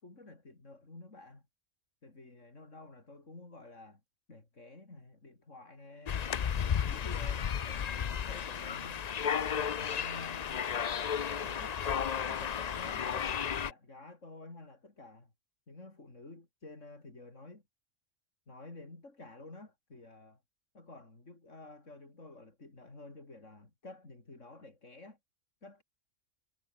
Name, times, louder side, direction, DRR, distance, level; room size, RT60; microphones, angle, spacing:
voice 1, 0.0-1.4 2.0-4.0 4.3-6.3 6.6-9.0 9.3-10.6 11.3-11.8 12.2-15.3 15.7-17.6 18.5-20.4 20.7-25.2 25.6-25.8, left 2 dB, 85° left, 4.8 m, -51 dB
sound 1, 6.1-13.7, left 8 dB, 45° left, 0.5 m, -33 dB
omnidirectional pair, 1.3 m